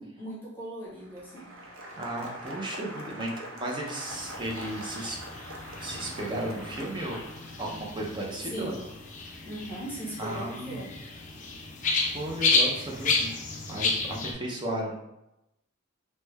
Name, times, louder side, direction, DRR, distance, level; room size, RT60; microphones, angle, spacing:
voice 1, 0.0-1.5 8.4-8.8 9.4-10.9, equal, 10° left, -8 dB, 0.9 m, -38 dB
Applause, 0.9-7.8, equal, 75° right, 0.6 m, -43 dB
voice 2, 2.0-3.3 3.5-5.2 5.8-7.2 7.6-8.8 10.2-10.8 12.1-13.4 13.7-15.0, right 1 dB, 25° right, -2 dB, 0.5 m, -34 dB
sound 1, 4.1-14.3, left 3 dB, 35° left, 0.4 m, -32 dB
3.2 x 2.1 x 3.3 m, 0.88 s
head